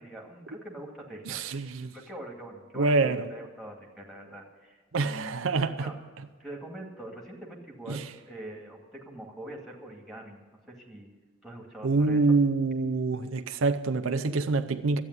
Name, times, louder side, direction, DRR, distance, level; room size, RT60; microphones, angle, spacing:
voice 1, 0.0-1.4 1.9-6.0 6.4-11.1 11.4-12.4, right 1 dB, ahead, 2.2 m, -43 dB
voice 2, 1.3-1.9 2.7-3.2 4.9-5.9 7.9-8.0 11.8-15.0, right 3 dB, 80° right, 0.6 m, -26 dB
12.5 x 8.9 x 9.6 m
head